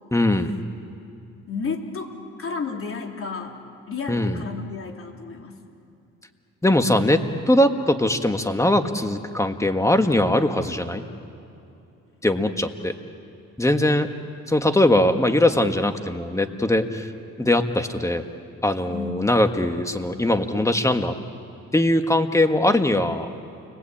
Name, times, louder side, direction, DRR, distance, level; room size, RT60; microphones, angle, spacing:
voice 1, 0.1-0.5 4.1-4.4 6.6-7.2 7.5-11.0 12.2-12.9 13.6-14.1 14.5-17.1 17.4-18.2 18.6-21.1 21.7-23.3, left 1 dB, 10° left, 7 dB, 1.7 m, -21 dB
voice 2, 1.5-3.6 3.9-5.6 14.8-15.0 18.9-19.1, left 4 dB, 45° left, 3 dB, 3.4 m, -32 dB
29.5 x 22.0 x 8.7 m, 2.7 s
cardioid pair, 90°, 30 cm